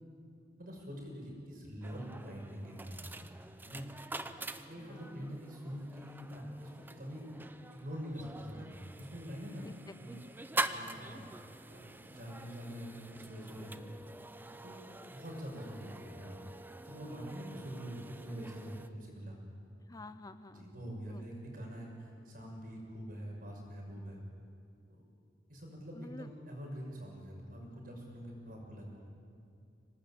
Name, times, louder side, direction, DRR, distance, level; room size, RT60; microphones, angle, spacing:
voice 1, 0.6-3.2 3.6-3.9 4.7-7.2 7.7-9.7 10.0-10.1 10.7-11.3 11.7-14.1 14.6-14.8 15.1-16.5 16.8-19.4 20.5-24.2 24.9-25.0 25.5-28.9, equal, 55° right, 0 dB, 6.3 m, -45 dB
sound 1, 1.8-18.9, right 2 dB, 10° right, 0.7 m, -45 dB
voice 2, 4.8-5.4 9.6-9.8 10.1-10.2 19.9-20.7 21.1-21.2 26.0-26.3, left 2 dB, 20° left, 12 dB, 0.5 m, -50 dB
25.5 x 18.5 x 8.8 m, 2.4 s
head